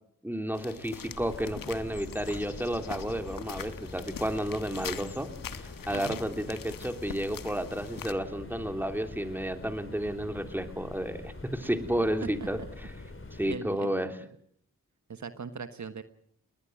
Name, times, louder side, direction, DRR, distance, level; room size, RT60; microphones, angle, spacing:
voice 1, 0.2-5.3 5.6-12.6 13.3-14.1, equal, 5° right, 7 dB, 3.1 m, -32 dB
sound 1, 0.5-8.1, left 8 dB, 80° left, 1.3 m, -43 dB
sound 2, 1.0-13.6, left 2 dB, 40° left, 4.7 m, -45 dB
voice 2, 13.5-13.9 15.1-16.0, right 5 dB, 60° right, 10 dB, 1.4 m, -39 dB
21.0 x 20.5 x 7.9 m, 0.65 s
cardioid pair, 45°, 33 cm